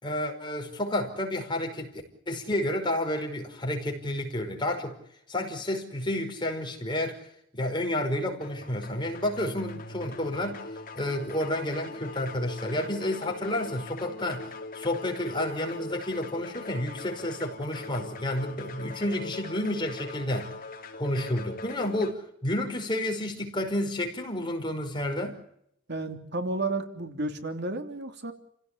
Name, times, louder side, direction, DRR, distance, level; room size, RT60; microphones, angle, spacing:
voice 1, 0.0-1.9 2.3-5.0 5.3-7.2 7.5-10.6 11.0-20.5 21.0-25.4, left 1 dB, 25° left, 5.3 m, -30 dB
sound 1, 8.4-22.1, left 3 dB, 45° left, 3.1 m, -41 dB
voice 2, 25.9-28.3, right 2 dB, 60° right, 3.1 m, -32 dB
30.0 x 17.0 x 8.6 m
head